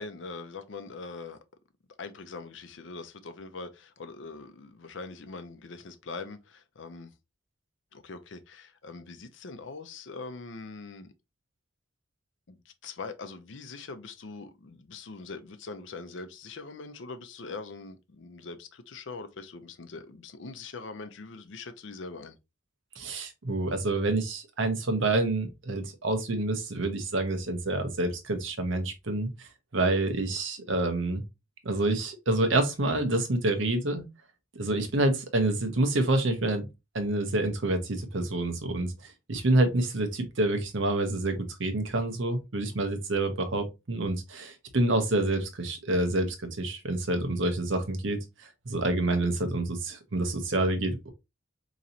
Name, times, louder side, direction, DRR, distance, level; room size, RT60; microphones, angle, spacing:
voice 1, 0.0-1.4 2.0-7.1 7.9-11.1 12.5-22.4, left 3 dB, 70° left, 0.6 m, -42 dB
voice 2, 23.0-31.2 31.6-34.0 34.5-36.7 36.9-48.2 48.7-51.1, right 2 dB, 75° right, 0.9 m, -28 dB
3.9 x 3.0 x 2.8 m
head